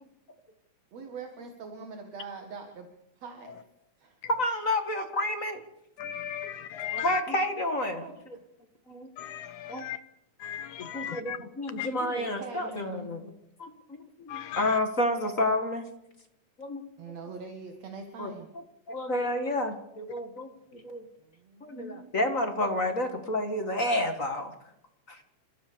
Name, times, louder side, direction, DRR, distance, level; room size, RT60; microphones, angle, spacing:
voice 1, 0.9-2.9 3.2-3.6 4.0-4.2 7.9-8.2 11.9-13.1 17.0-18.5 21.2-22.1, right 4 dB, 65° right, 4 dB, 2.9 m, -43 dB
voice 2, 4.4-5.6 6.9-8.0 8.9-9.1 9.7-9.8 10.8-13.3 13.6-15.8 16.6-16.8 18.2-18.3 18.9-21.0 21.6-24.5 25.1-25.2, left 1 dB, 30° left, 6 dB, 1.7 m, -30 dB
voice 3, 6.0-7.2 9.2-10.0 10.4-11.4 11.8-11.9 14.3-14.8, left 10 dB, 85° left, 11 dB, 2.7 m, -36 dB
29.0 x 15.0 x 6.9 m, 0.85 s
omnidirectional pair, 3.4 m